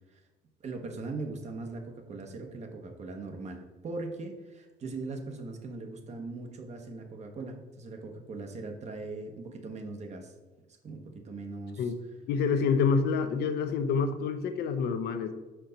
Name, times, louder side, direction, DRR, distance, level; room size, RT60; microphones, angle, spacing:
voice 1, 0.6-10.3 10.8-11.9, right 3 dB, 40° right, 5 dB, 0.9 m, -40 dB
voice 2, 12.3-15.3, left 5 dB, 70° left, 9 dB, 0.6 m, -27 dB
5.5 x 4.5 x 3.9 m, 1.2 s
cardioid pair, 110°, 17 cm